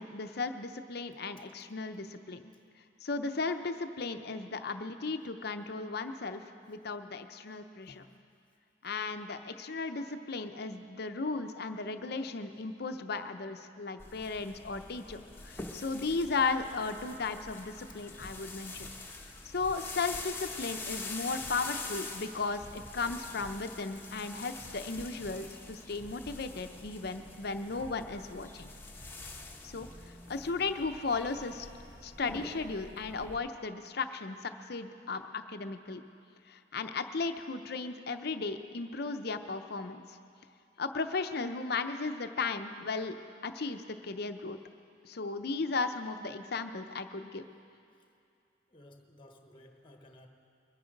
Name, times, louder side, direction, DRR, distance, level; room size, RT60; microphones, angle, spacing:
voice 1, 0.0-2.5 3.0-8.1 8.8-18.9 19.4-28.7 29.6-29.9 30.3-31.7 32.0-36.0 36.5-40.2 40.8-43.2 43.4-44.6 45.0-47.5, left 4 dB, 60° left, 8 dB, 0.7 m, -35 dB
sound 1, 14.0-33.4, left 3 dB, 10° left, 1.1 m, -45 dB
voice 2, 48.7-50.3, left 1 dB, 25° left, 4 dB, 1.2 m, -56 dB
22.0 x 9.8 x 5.3 m, 2.5 s
head